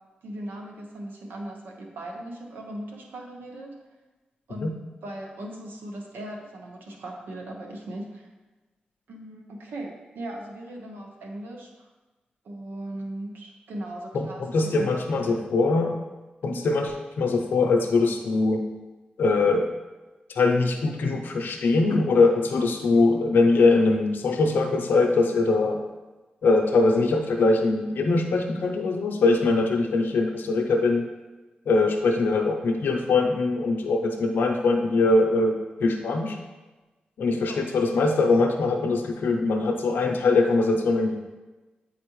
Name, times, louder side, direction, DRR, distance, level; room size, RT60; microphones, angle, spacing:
voice 1, 0.2-3.8 4.5-4.7 5.0-8.3 9.1-11.9 12.4-14.4 14.8-15.4 16.4-16.7 37.5-37.6, right 1 dB, 90° right, 1 dB, 0.9 m, -38 dB
voice 2, 14.1-16.0 16.4-18.6 19.2-19.7 20.3-25.8 26.4-31.0 31.7-36.4 37.2-41.4, left 3 dB, 85° left, 2 dB, 0.6 m, -22 dB
8.6 x 4.2 x 3.1 m, 1.2 s
cardioid pair, 60°, 3 cm